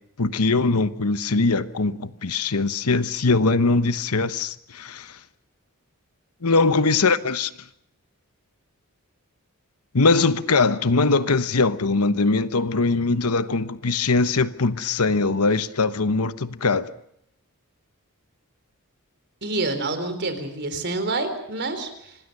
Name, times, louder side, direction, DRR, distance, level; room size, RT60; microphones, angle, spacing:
voice 1, 0.2-5.2 6.4-7.5 9.9-16.9, left 3 dB, 80° left, 1.1 m, -21 dB
voice 2, 19.4-22.2, right 2 dB, 50° right, 4.0 m, -27 dB
26.0 x 19.5 x 6.8 m
head